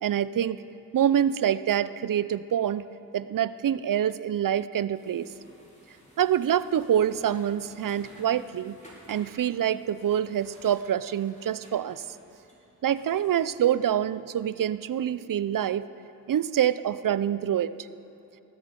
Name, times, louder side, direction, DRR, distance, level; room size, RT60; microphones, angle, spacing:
voice 1, 0.0-0.6 0.9-2.9 3.1-5.3 6.2-8.8 9.1-12.0 12.8-15.8 16.3-17.7, right 10 dB, 70° right, 16 dB, 0.5 m, -26 dB
sound 1, 4.9-14.5, left 1 dB, 20° left, 4.3 m, -55 dB
19.5 x 13.0 x 5.2 m, 2.9 s
cardioid pair, 65°, 33 cm